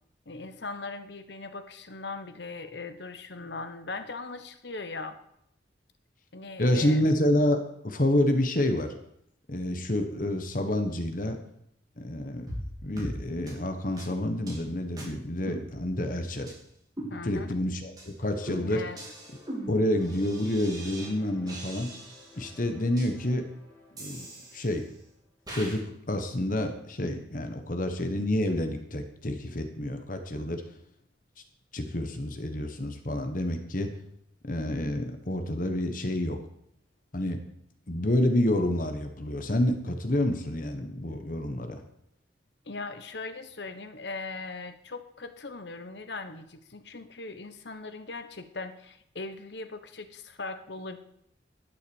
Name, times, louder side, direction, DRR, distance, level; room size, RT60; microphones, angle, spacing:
voice 1, 0.3-5.2 6.3-7.0 17.1-17.5 18.7-19.0 42.7-51.0, left 3 dB, 65° left, 10 dB, 1.1 m, -39 dB
voice 2, 6.6-8.9 9.5-11.4 12.0-12.5 12.8-16.5 17.2-18.8 19.7-21.9 22.4-23.4 23.9-24.8 25.5-25.8 26.1-30.6 31.7-33.9 34.4-36.4 37.1-37.4 37.9-41.8, left 1 dB, 45° left, 6 dB, 1.3 m, -28 dB
sound 1, 12.5-12.7 13.0-13.2 13.5-13.6 14.0-14.1 14.5-14.6 15.0-15.1 15.5-16.1 16.5-16.6 17.0-17.6 18.0-18.1 18.5-21.1 21.5-22.4 23.0-23.1 24.0-24.9 25.5-25.8, right 1 dB, 20° right, 3.6 m, -40 dB
sound 2, 18.2-25.7, left 2 dB, 10° left, 4.4 m, -54 dB
12.0 x 7.7 x 7.1 m, 0.73 s
head